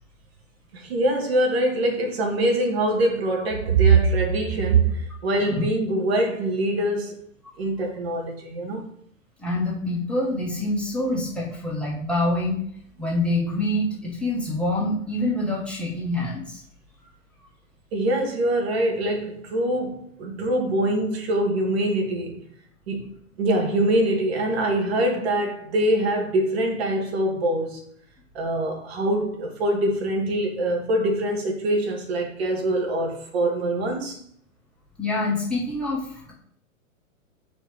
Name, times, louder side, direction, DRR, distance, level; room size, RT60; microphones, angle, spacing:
voice 1, 0.7-7.2 7.6-8.9 17.9-22.4 22.9-23.1 23.4-27.8 28.3-34.2, right 2 dB, 45° right, 1.5 m, -23 dB
voice 2, 5.4-5.7 9.4-12.6 13.0-16.6 35.0-36.3, left 1 dB, 5° left, 1.4 m, -26 dB
4.9 x 4.4 x 4.7 m
figure-of-eight pair, 110°, 42 cm